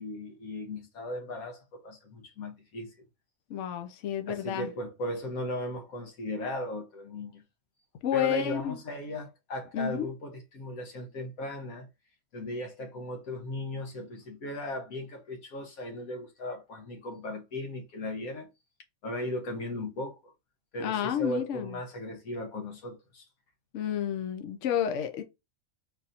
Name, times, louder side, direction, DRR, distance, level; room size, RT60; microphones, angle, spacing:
voice 1, 0.0-2.9 4.3-7.4 8.1-11.9 12.3-18.5 19.0-20.3 20.7-23.3, left 1 dB, 85° left, 1.5 m, -37 dB
voice 2, 3.5-4.7 8.0-8.8 9.7-10.1 20.8-21.8 23.7-25.2, left 9 dB, 65° left, 0.9 m, -30 dB
4.0 x 2.6 x 4.1 m
omnidirectional pair, 1.4 m